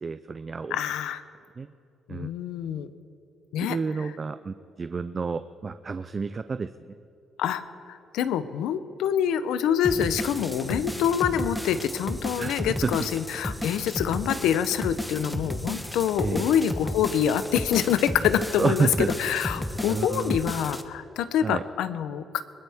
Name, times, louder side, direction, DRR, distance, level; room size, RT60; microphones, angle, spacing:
voice 1, 0.0-0.8 1.6-1.7 2.1-2.3 3.6-6.7 12.4-12.9 16.2-16.5 18.6-19.1 19.9-20.4 21.4-21.6, right 4 dB, 35° right, 12 dB, 0.4 m, -29 dB
voice 2, 0.7-1.2 2.1-2.9 3.5-3.8 7.4-22.4, left 9 dB, 90° left, 12 dB, 0.7 m, -26 dB
sound 1, 9.8-20.8, left 1 dB, 5° left, 1.0 m, -33 dB
21.0 x 19.0 x 3.5 m, 2.7 s
cardioid pair, 90°, 0 cm